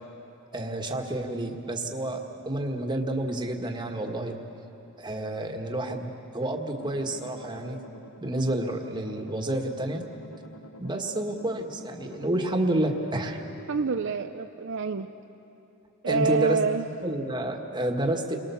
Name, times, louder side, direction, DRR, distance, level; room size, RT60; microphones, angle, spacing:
voice 1, 0.5-4.4 5.0-7.8 8.2-10.1 10.8-13.4 16.1-16.6 17.0-18.4, right 1 dB, 20° right, 3 dB, 1.7 m, -29 dB
sound 1, 6.8-13.9, left 1 dB, 80° left, 1.3 m, -47 dB
voice 2, 13.7-15.1 16.0-16.8, right 4 dB, 60° right, 6 dB, 0.6 m, -26 dB
29.0 x 23.0 x 7.1 m, 3.0 s
head